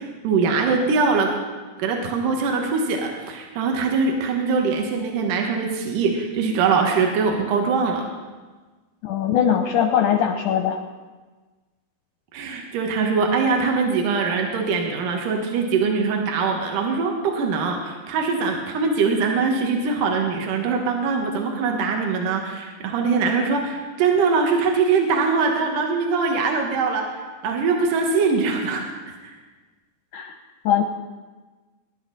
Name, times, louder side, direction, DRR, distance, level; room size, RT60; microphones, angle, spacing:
voice 1, 0.0-1.3 1.8-8.1 12.3-27.1 27.4-29.3, right 4 dB, 65° right, 2 dB, 2.7 m, -22 dB
voice 2, 9.0-10.8 30.1-30.3 30.6-30.8, left 9 dB, 75° left, 5 dB, 1.9 m, -21 dB
21.5 x 11.0 x 4.1 m, 1.3 s
omnidirectional pair, 4.4 m